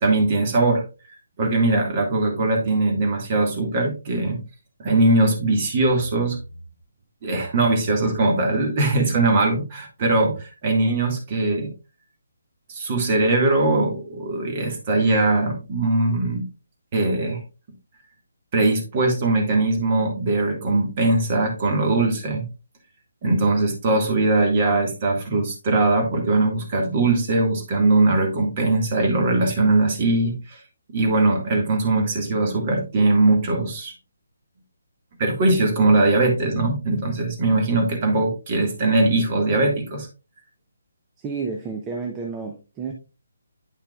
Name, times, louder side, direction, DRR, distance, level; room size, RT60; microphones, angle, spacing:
voice 1, 0.0-0.8 1.4-4.4 4.8-6.4 7.2-11.7 12.7-16.4 16.9-17.4 18.5-22.5 23.2-30.6 30.9-33.9 35.2-40.1, right 2 dB, 30° right, 3 dB, 1.9 m, -21 dB
voice 2, 41.2-42.9, right 5 dB, 15° right, 3 dB, 0.7 m, -30 dB
9.3 x 5.7 x 2.4 m, 0.31 s
figure-of-eight pair, 145°, 0 cm